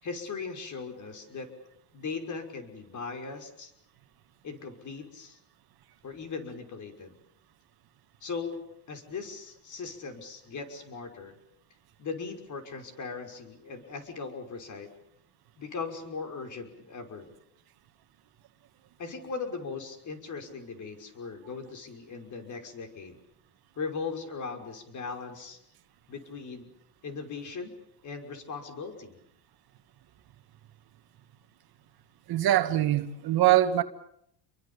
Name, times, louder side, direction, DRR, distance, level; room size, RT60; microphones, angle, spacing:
voice 1, 0.0-1.5 1.9-3.7 4.4-5.4 6.0-7.1 8.2-8.6 8.9-11.3 12.0-14.9 15.6-17.3 19.0-23.2 23.8-25.6 26.1-26.7 27.0-27.7 28.0-29.2, left 4 dB, 40° left, 5.7 m, -38 dB
voice 2, 32.3-33.8, right 13 dB, 55° right, 2.0 m, -23 dB
29.5 x 23.0 x 7.1 m
cardioid pair, 120°, 44 cm